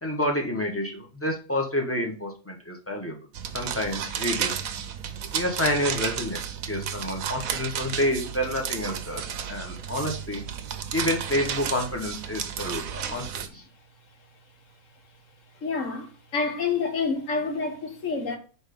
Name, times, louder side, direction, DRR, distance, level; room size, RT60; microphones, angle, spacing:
voice 1, 0.0-3.2 3.5-4.5 5.3-10.4 10.9-13.6, left 1 dB, 10° left, 1.0 m, -29 dB
sound 1, 3.3-13.5, right 8 dB, 70° right, 1.1 m, -32 dB
voice 2, 15.6-16.1 16.3-18.4, left 4 dB, 60° left, 1.5 m, -27 dB
4.9 x 4.3 x 5.2 m
omnidirectional pair, 1.6 m